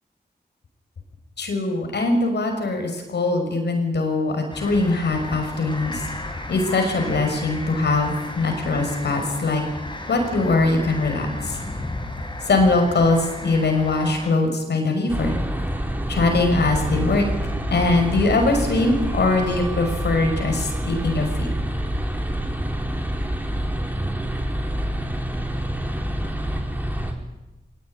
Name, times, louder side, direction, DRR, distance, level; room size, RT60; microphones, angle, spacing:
voice 1, 1.4-6.1 6.5-9.6 10.1-11.6 12.4-15.4 16.1-17.2 17.7-21.5, left 3 dB, 85° left, 4 dB, 6.2 m, -21 dB
sound 1, 4.5-14.3, left 2 dB, 25° left, 5.0 m, -34 dB
sound 2, 15.1-27.1, right 1 dB, 10° right, 4.7 m, -27 dB
22.5 x 18.5 x 10.0 m, 1.0 s
wide cardioid pair, 80°, 17 cm